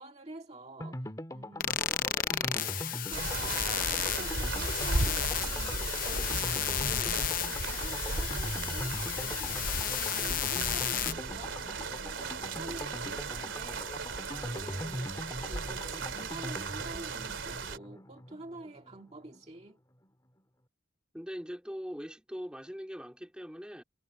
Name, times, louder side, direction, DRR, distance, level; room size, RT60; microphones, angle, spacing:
voice 1, 0.0-19.8, right 2 dB, 30° right, 2.0 m, -48 dB
sound 1, 0.8-19.4 19.7-19.8 20.0-20.1, left 1 dB, 20° left, 1.7 m, -42 dB
sound 2, 1.6-11.1, left 11 dB, 45° left, 0.7 m, -33 dB
sound 3, 3.1-17.8, right 3 dB, 75° right, 2.8 m, -36 dB
voice 2, 21.1-23.8, equal, 5° right, 3.4 m, -41 dB
head